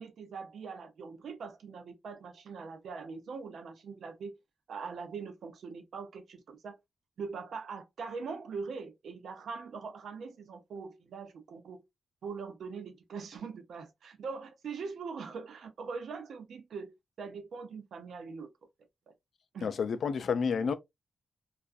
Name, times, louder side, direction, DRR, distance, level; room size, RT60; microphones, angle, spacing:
voice 1, 0.0-4.3 4.7-6.8 7.2-11.8 12.2-16.9 17.2-18.5 19.5-19.7, right 5 dB, 80° right, 0.6 m, -42 dB
voice 2, 19.6-20.7, left 6 dB, 70° left, 0.3 m, -30 dB
2.4 x 2.3 x 2.4 m
cardioid pair, 95°, 0 cm